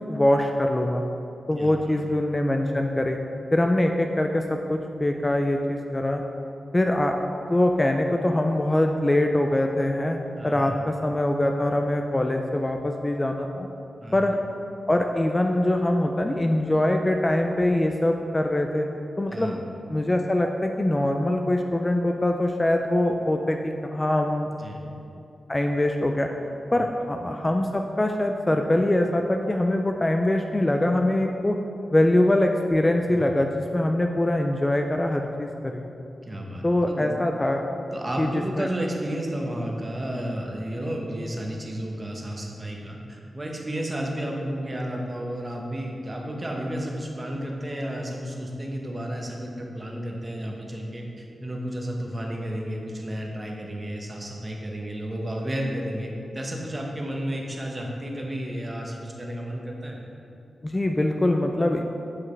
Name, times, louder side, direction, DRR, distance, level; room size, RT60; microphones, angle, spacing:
voice 1, 0.1-1.0 1.5-3.2 3.5-6.2 6.7-7.1 7.5-13.7 14.1-14.4 14.9-18.9 19.2-19.6 19.9-24.5 25.5-26.3 26.7-31.6 31.9-35.8 36.6-37.6 38.2-38.3 38.5-38.7 60.6-61.8, left 1 dB, 20° left, 3 dB, 0.3 m, -23 dB
voice 2, 1.6-2.0 10.3-10.8 14.0-14.2 19.3-19.6 24.6-24.8 26.7-26.8 33.1-33.4 36.2-37.1 37.9-60.0, right 1 dB, 25° right, 0 dB, 0.9 m, -32 dB
8.3 x 4.9 x 3.2 m, 2.7 s
wide cardioid pair, 90°, 0 cm